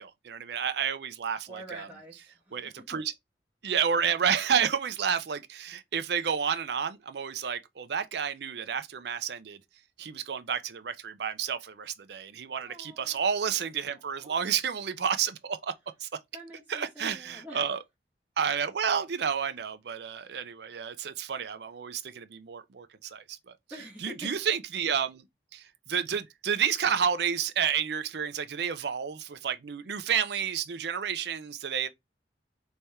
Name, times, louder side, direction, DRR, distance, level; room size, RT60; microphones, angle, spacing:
voice 1, 0.0-1.9 2.5-3.1 3.6-9.6 10.0-15.7 16.0-16.1 16.7-17.8 18.4-23.2 24.0-25.2 25.5-25.6 25.9-31.9, right 7 dB, 65° right, 0.5 m, -30 dB
voice 2, 1.5-2.2 2.5-2.7 12.6-13.6 13.9-14.3 16.3-17.7 23.7-24.3, right 1 dB, 10° right, 1.1 m, -46 dB
3.4 x 3.3 x 4.2 m
head